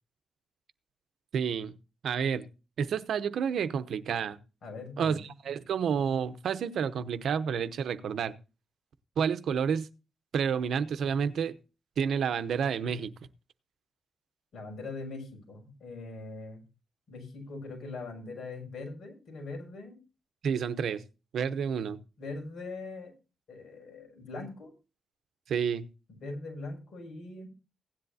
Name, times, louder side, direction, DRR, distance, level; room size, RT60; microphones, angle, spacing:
voice 1, 1.3-1.7 2.0-2.5 2.8-4.4 5.0-8.3 9.2-9.9 10.3-11.6 12.0-13.1 20.4-21.0 21.3-22.0 25.5-25.9, right 7 dB, 75° right, 0.8 m, -29 dB
voice 2, 4.6-5.2 14.5-16.6 17.1-20.0 22.2-23.1 23.5-24.7 26.1-27.5, left 3 dB, 70° left, 6.2 m, -41 dB
17.0 x 10.5 x 2.7 m
cardioid pair, 100°, 0 cm